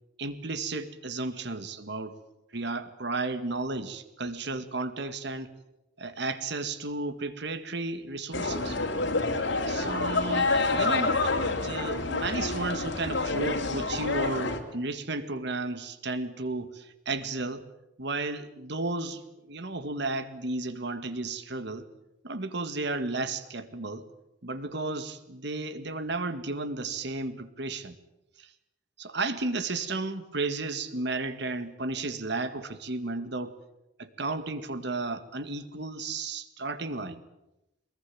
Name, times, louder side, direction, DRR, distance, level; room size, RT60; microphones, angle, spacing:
voice 1, 0.2-2.2 2.5-5.5 6.0-8.8 9.7-17.7 18.0-19.2 19.5-21.8 22.2-24.1 24.4-28.0 28.4-28.5 29.0-33.5 34.0-37.2, right 3 dB, 65° right, 10 dB, 2.0 m, -33 dB
sound 1, 8.3-14.6, left 3 dB, 70° left, 3.1 m, -28 dB
23.5 x 21.0 x 8.7 m, 0.92 s
head